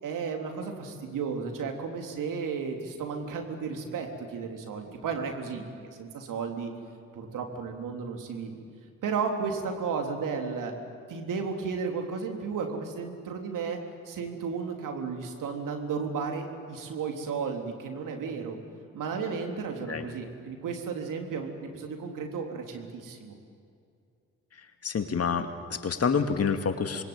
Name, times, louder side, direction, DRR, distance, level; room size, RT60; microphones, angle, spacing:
voice 1, 0.0-5.6 5.9-6.7 7.1-8.5 9.0-10.7 11.1-13.8 14.1-18.6 18.9-23.4, right 5 dB, 60° right, 3 dB, 3.6 m, -33 dB
voice 2, 24.8-27.0, left 6 dB, 45° left, 7 dB, 2.3 m, -28 dB
27.0 x 21.0 x 9.0 m, 2.4 s
hypercardioid pair, 40°, 35 cm